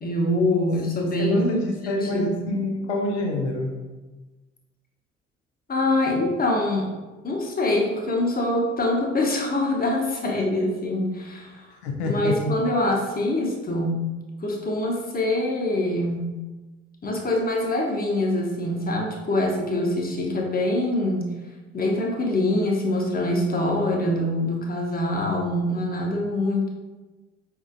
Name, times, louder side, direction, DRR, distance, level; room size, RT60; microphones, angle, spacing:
voice 1, 0.0-1.7 2.0-2.5 5.7-6.9 7.2-11.7 12.0-14.0 14.4-16.4 17.0-21.3 21.7-26.7, left 1 dB, 30° left, -1 dB, 0.9 m, -24 dB
voice 2, 1.2-3.8 11.8-12.6, left 1 dB, 80° left, 1 dB, 0.6 m, -26 dB
4.7 x 2.7 x 2.5 m, 1.2 s
figure-of-eight pair, 45°, 32 cm